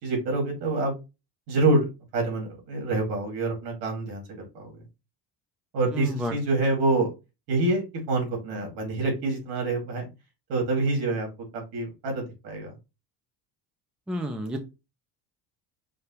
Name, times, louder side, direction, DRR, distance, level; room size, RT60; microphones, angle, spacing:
voice 1, 0.0-0.9 1.5-1.9 2.1-4.6 5.7-7.1 7.5-10.0 10.5-11.3 11.5-12.7, right 2 dB, 85° right, 2 dB, 2.5 m, -26 dB
voice 2, 14.1-14.6, equal, ahead, 6 dB, 0.4 m, -30 dB
5.2 x 2.3 x 4.3 m, 0.26 s
cardioid pair, 160°, 39 cm